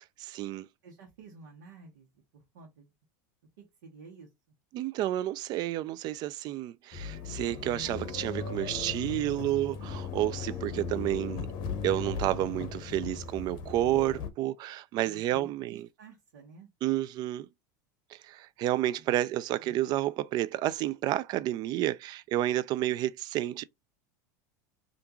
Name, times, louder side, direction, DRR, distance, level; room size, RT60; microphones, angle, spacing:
voice 1, 0.2-0.7 4.7-11.5 11.8-15.8 16.8-17.5 18.1-23.6, right 14 dB, 45° right, 0.3 m, -30 dB
voice 2, 0.8-2.9 3.6-4.3 15.0-16.7 18.9-19.0 19.6-19.8, right 4 dB, 80° right, 1.0 m, -51 dB
sound 1, 6.9-14.3, left 5 dB, 50° left, 0.7 m, -37 dB
3.4 x 2.5 x 3.0 m
supercardioid pair, 105°, 10 cm